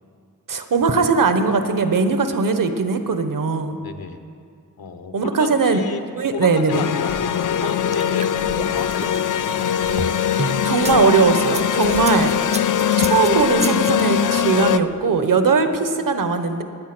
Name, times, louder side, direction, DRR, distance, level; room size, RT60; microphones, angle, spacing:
voice 1, 0.5-3.8 5.1-5.8 6.2-6.8 10.3-12.4 13.0-16.6, right 4 dB, 65° right, 8 dB, 1.1 m, -19 dB
voice 2, 3.8-4.2 4.8-6.0 6.3-9.7, left 5 dB, 85° left, 7 dB, 1.1 m, -33 dB
sound 1, 6.7-14.8, left 9 dB, 60° left, 0.5 m, -21 dB
sound 2, 7.1-15.1, right 2 dB, 80° right, 2.8 m, -44 dB
sound 3, 7.6-11.0 11.4-14.0, right 3 dB, 20° right, 0.5 m, -31 dB
18.5 x 8.6 x 6.0 m, 2.3 s
wide cardioid pair, 130°, 35 cm